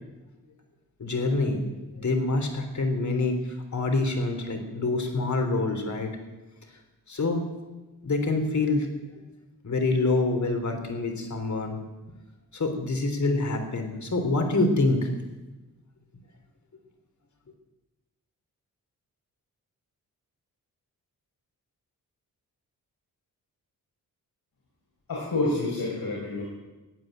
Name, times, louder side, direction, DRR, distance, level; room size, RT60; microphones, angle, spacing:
voice 1, 1.0-6.1 7.1-7.4 8.0-8.9 9.6-11.8 12.5-15.1, left 2 dB, 50° left, 5 dB, 3.6 m, -26 dB
voice 2, 25.1-26.4, left 2 dB, 70° left, -5 dB, 5.5 m, -28 dB
15.5 x 9.4 x 9.2 m, 1.1 s
cardioid pair, 60°, 36 cm